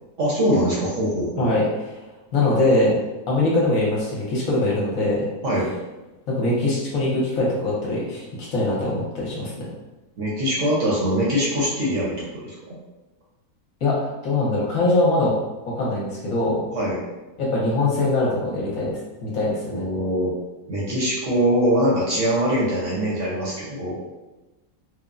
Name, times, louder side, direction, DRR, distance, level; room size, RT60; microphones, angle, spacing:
voice 1, 0.2-1.5 5.4-5.7 10.2-12.7 16.7-17.0 19.7-20.3 20.7-24.0, equal, 60° right, -6 dB, 1.0 m, -23 dB
voice 2, 2.3-3.0 3.3-5.2 6.3-8.2 8.5-9.5 13.8-15.3 15.7-16.6 17.4-19.8, left 2 dB, 65° left, -5 dB, 1.0 m, -22 dB
3.2 x 2.0 x 2.4 m, 1.1 s
omnidirectional pair, 1.7 m